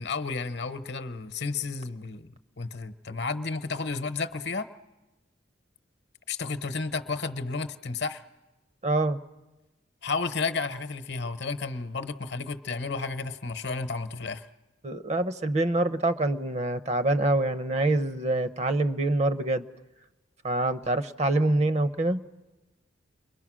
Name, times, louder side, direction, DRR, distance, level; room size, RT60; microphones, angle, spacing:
voice 1, 0.0-2.3 2.6-4.7 6.3-8.2 10.0-14.5, left 4 dB, 60° left, 11 dB, 0.9 m, -32 dB
voice 2, 8.8-9.2 14.8-19.6 20.4-22.2, right 2 dB, 35° right, 12 dB, 0.7 m, -25 dB
29.5 x 22.5 x 6.2 m, 1.1 s
head